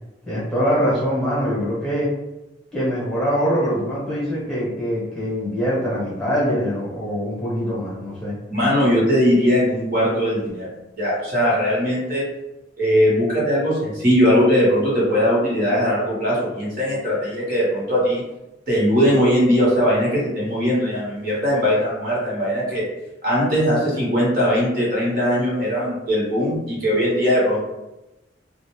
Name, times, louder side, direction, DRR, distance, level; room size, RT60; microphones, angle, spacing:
voice 1, 0.3-2.1 2.7-8.4, equal, 5° left, -10 dB, 1.0 m, -23 dB
voice 2, 8.5-10.7 11.0-12.2 12.8-18.2 18.7-22.8 23.2-27.6, equal, 50° right, -6 dB, 1.0 m, -20 dB
2.4 x 2.0 x 3.0 m, 0.98 s
head